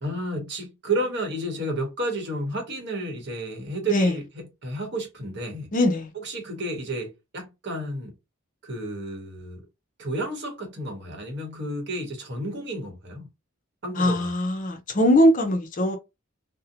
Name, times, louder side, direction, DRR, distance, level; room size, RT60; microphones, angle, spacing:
voice 1, 0.0-5.7 6.1-8.1 8.6-9.6 10.0-13.3 13.8-14.3, right 1 dB, 55° right, 1.0 m, -31 dB
voice 2, 5.7-6.1 14.0-16.0, left 1 dB, 40° left, 0.5 m, -21 dB
2.6 x 2.1 x 2.7 m
head